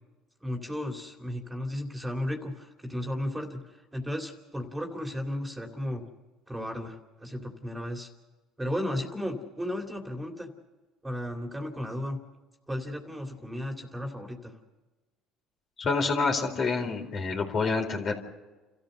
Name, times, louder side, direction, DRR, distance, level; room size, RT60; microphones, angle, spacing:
voice 1, 0.4-6.0 6.5-8.1 8.6-10.5 11.0-12.2 12.7-14.5, left 1 dB, 10° right, 3 dB, 2.9 m, -34 dB
voice 2, 15.8-18.1, left 4 dB, 45° left, 3 dB, 4.2 m, -27 dB
29.5 x 14.0 x 6.7 m, 1.2 s
supercardioid pair, 85°, 0 cm